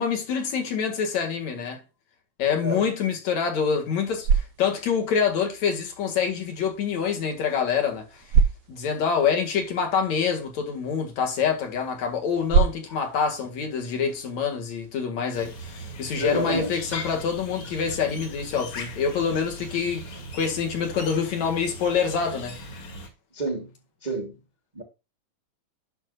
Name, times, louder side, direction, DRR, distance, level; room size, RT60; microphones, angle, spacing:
voice 1, 0.0-1.8 2.4-8.1 8.7-22.6, left 6 dB, 65° left, 3.1 m, -26 dB
sound 1, 3.9-15.0, right 6 dB, 65° right, 1.9 m, -30 dB
sound 2, 15.3-23.1, equal, 45° left, 2.6 m, -40 dB
voice 2, 16.2-17.2 21.0-21.2 23.3-23.7 24.0-24.4 24.7-24.8, right 2 dB, 25° right, 1.1 m, -31 dB
10.5 x 6.6 x 2.4 m
omnidirectional pair, 3.5 m